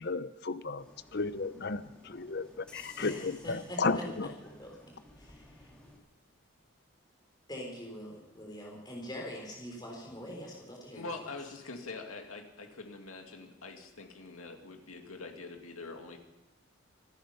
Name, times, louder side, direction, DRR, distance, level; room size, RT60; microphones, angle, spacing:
voice 1, 0.0-4.3, left 3 dB, 50° left, 13 dB, 0.7 m, -34 dB
sound 1, 0.8-6.0, equal, 5° left, 2.9 m, -56 dB
voice 2, 3.0-4.0 4.4-4.7 5.2-5.7 7.5-11.3, equal, 20° left, -1 dB, 3.8 m, -44 dB
voice 3, 10.9-16.2, left 3 dB, 90° left, 3 dB, 2.4 m, -44 dB
25.5 x 9.9 x 5.6 m, 0.99 s
head